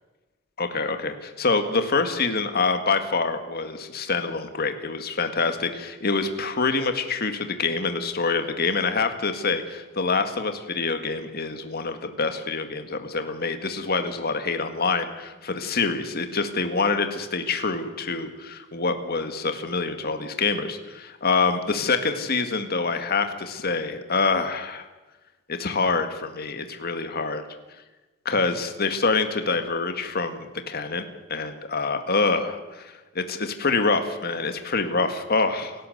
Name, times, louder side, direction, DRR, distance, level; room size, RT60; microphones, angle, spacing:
voice 1, 0.6-24.9 25.5-27.4 28.3-35.9, left 4 dB, 45° left, 7 dB, 1.9 m, -26 dB
28.5 x 12.0 x 7.9 m, 1.2 s
head